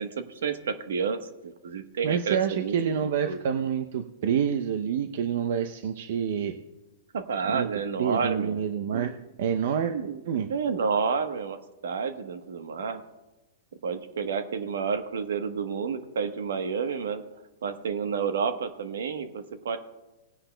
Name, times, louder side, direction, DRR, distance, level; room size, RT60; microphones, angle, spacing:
voice 1, 0.0-3.4 7.1-8.6 8.9-9.1 9.9-13.0 13.8-17.2 17.6-19.8, right 6 dB, 80° right, 9 dB, 1.1 m, -30 dB
voice 2, 2.0-6.6 7.5-7.7 8.0-9.1 9.4-9.9 10.3-10.5, right 8 dB, 65° right, 6 dB, 0.6 m, -27 dB
19.5 x 9.9 x 2.2 m, 1.0 s
hypercardioid pair, 135°, 0 cm